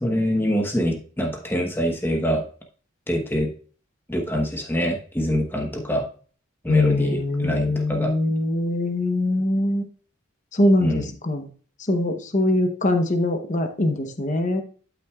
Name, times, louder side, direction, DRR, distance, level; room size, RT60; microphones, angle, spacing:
voice 1, 0.0-2.5 3.1-3.5 4.1-6.1 6.6-8.1 10.8-11.1, equal, 10° left, 2 dB, 1.0 m, -25 dB
voice 2, 6.7-9.8 10.5-11.5 11.9-14.6, left 1 dB, 35° left, 6 dB, 0.8 m, -22 dB
11.5 x 5.9 x 2.4 m, 0.42 s
head